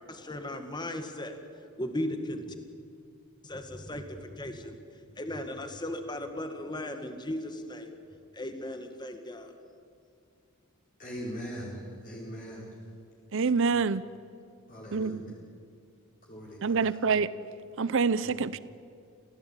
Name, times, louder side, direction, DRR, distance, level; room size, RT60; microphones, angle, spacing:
voice 1, 0.1-1.4 1.8-2.5 3.4-4.8 5.2-7.9 8.3-9.5, left 1 dB, 20° left, 1.9 m, -36 dB
voice 2, 11.0-12.7 13.8-13.9 14.7-15.3 16.3-17.0, equal, 40° left, 4.4 m, -41 dB
voice 3, 13.3-14.0 14.9-15.1 16.6-17.3 17.8-18.6, right 5 dB, 60° right, 0.7 m, -26 dB
27.5 x 17.0 x 9.1 m
head